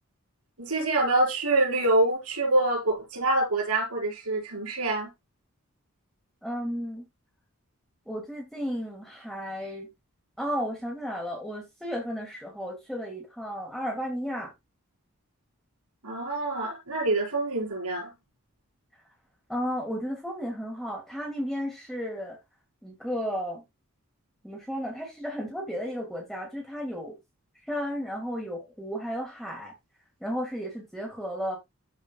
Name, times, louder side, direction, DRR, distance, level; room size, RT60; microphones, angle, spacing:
voice 1, 0.6-5.1 16.0-18.1, right 2 dB, 85° right, 5.1 m, -26 dB
voice 2, 6.4-7.0 8.1-9.9 10.4-14.5 19.5-22.4 22.8-23.6 24.4-27.2 27.7-29.7 30.2-31.6, equal, ahead, 2.1 m, -33 dB
13.0 x 5.1 x 2.2 m
head